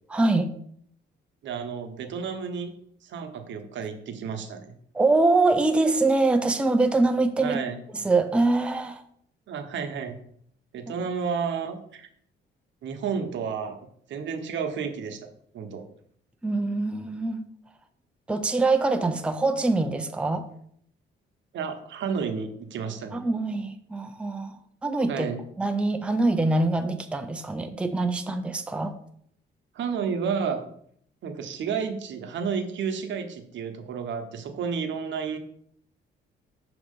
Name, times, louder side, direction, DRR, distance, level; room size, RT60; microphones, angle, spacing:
voice 1, 0.1-0.5 4.9-7.6 8.0-9.0 16.4-17.4 18.3-20.4 23.1-24.6 24.8-25.3 25.6-28.9, right 2 dB, 5° right, 6 dB, 0.5 m, -24 dB
voice 2, 1.4-2.7 3.0-4.7 7.4-7.8 9.5-10.2 10.7-12.1 12.8-15.2 15.5-15.8 21.5-23.2 25.1-25.4 29.7-30.7 31.2-35.4, right 6 dB, 70° right, 6 dB, 0.9 m, -31 dB
6.3 x 2.9 x 5.2 m, 0.65 s
cardioid pair, 90°, 20 cm